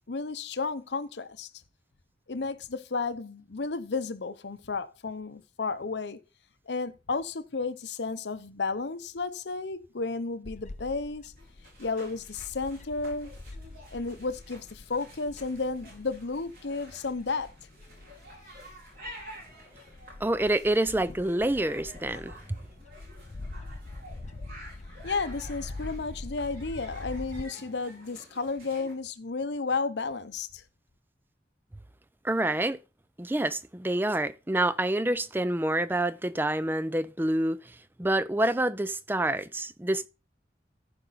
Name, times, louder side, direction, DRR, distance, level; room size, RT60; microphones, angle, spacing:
voice 1, 0.0-1.5 2.3-6.2 6.7-11.3 11.8-13.4 13.9-17.5 25.0-30.6, left 4 dB, 75° left, 0.7 m, -33 dB
Bird / Wind, 10.4-27.4, left 2 dB, 40° left, 0.5 m, -45 dB
sound 1, 11.4-28.9, equal, 50° right, 5.4 m, -50 dB
voice 2, 20.2-22.6 32.2-32.8 33.2-40.1, right 1 dB, 10° right, 0.4 m, -27 dB
14.5 x 5.2 x 4.0 m
head